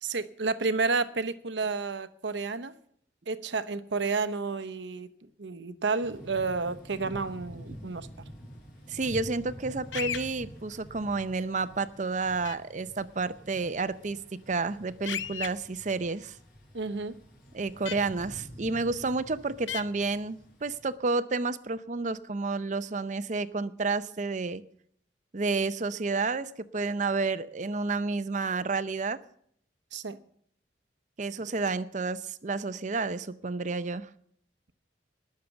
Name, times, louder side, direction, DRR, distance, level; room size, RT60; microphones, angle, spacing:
voice 1, 0.0-2.7 3.3-5.1 5.4-8.1 16.7-17.2 29.9-30.2, right 4 dB, 75° right, 0.8 m, -31 dB
Thunder / Rain, 6.0-20.9, equal, 60° left, 5.0 m, -47 dB
voice 2, 8.9-16.4 17.5-24.6 25.3-29.2 31.2-34.1, right 3 dB, 40° right, 0.6 m, -30 dB
sound 1, 9.9-10.2 12.4-12.6 15.1-15.5 17.9-18.0 19.7-19.8, left 9 dB, 90° left, 0.7 m, -33 dB
19.5 x 6.7 x 7.0 m
head